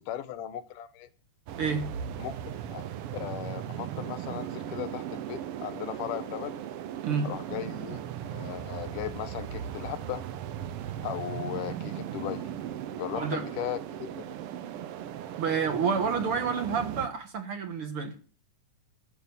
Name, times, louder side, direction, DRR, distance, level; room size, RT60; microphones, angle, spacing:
voice 1, 0.1-1.1 2.2-2.3 2.6-2.9 3.1-6.6 7.2-8.0 8.3-10.2 11.0-12.4 12.9-14.3, left 11 dB, 85° left, 2.5 m, -37 dB
sound 1, 1.5-17.1, right 10 dB, 75° right, 1.3 m, -37 dB
voice 2, 15.4-18.2, right 6 dB, 55° right, 1.9 m, -29 dB
11.5 x 8.1 x 7.1 m
omnidirectional pair, 3.6 m